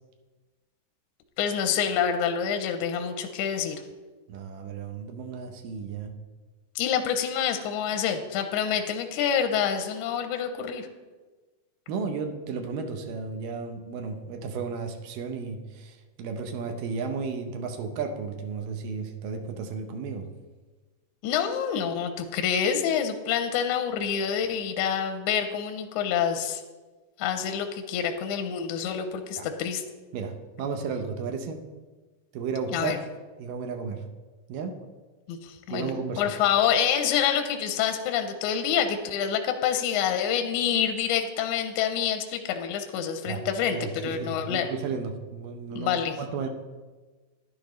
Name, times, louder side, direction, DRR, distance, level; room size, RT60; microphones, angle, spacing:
voice 1, 1.4-3.8 6.8-10.9 21.2-26.6 27.2-29.8 32.7-33.0 35.3-35.9 36.2-44.7 45.7-46.2, left 8 dB, 80° left, 6 dB, 1.9 m, -27 dB
voice 2, 4.3-6.1 11.9-20.3 29.4-29.5 30.1-31.6 32.3-32.9 33.4-34.0 34.5-34.7 35.7-36.2 43.3-43.4 43.7-46.5, right 5 dB, 80° right, 5 dB, 2.5 m, -33 dB
11.5 x 10.5 x 3.1 m, 1.3 s
omnidirectional pair, 4.0 m